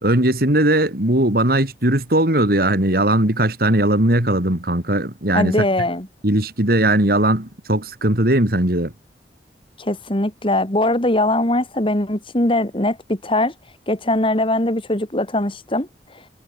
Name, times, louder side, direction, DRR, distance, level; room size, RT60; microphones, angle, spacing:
voice 1, 0.0-5.6 6.2-8.9, right 1 dB, 55° right, 3.6 m, -18 dB
voice 2, 5.3-6.1 9.8-13.5 13.9-15.9 16.1-16.2, left 1 dB, 30° left, 2.5 m, -21 dB
head